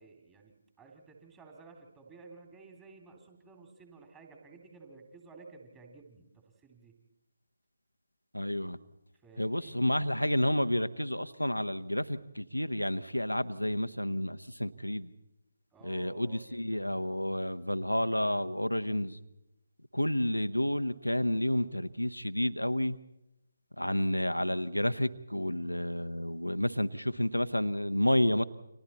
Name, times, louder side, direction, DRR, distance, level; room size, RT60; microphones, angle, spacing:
voice 1, 0.0-6.9 9.1-9.8 15.7-17.0, right 4 dB, 15° right, 2 dB, 2.7 m, -54 dB
voice 2, 8.3-8.8 9.4-15.1 15.8-19.2 19.9-23.0 23.8-28.4, left 1 dB, 90° left, 10 dB, 1.0 m, -30 dB
30.0 x 25.5 x 4.2 m, 0.89 s
figure-of-eight pair, 145°, 0 cm